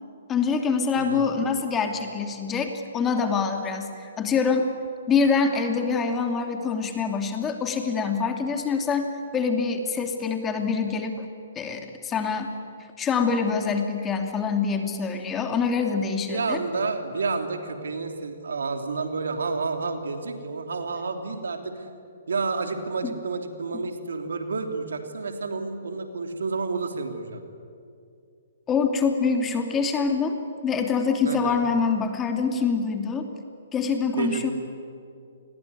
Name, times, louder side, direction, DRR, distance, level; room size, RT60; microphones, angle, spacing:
voice 1, 0.3-4.7 5.1-9.1 9.3-11.2 11.5-12.5 13.0-16.6 23.0-23.1 28.7-33.3 33.7-34.5, left 5 dB, 20° left, 5 dB, 2.8 m, -25 dB
voice 2, 1.0-1.3 16.3-22.0 22.3-27.4 31.2-31.6 34.2-34.5, right 4 dB, 75° right, 6 dB, 3.1 m, -30 dB
28.5 x 22.0 x 9.6 m, 2.5 s
figure-of-eight pair, 130°, 0 cm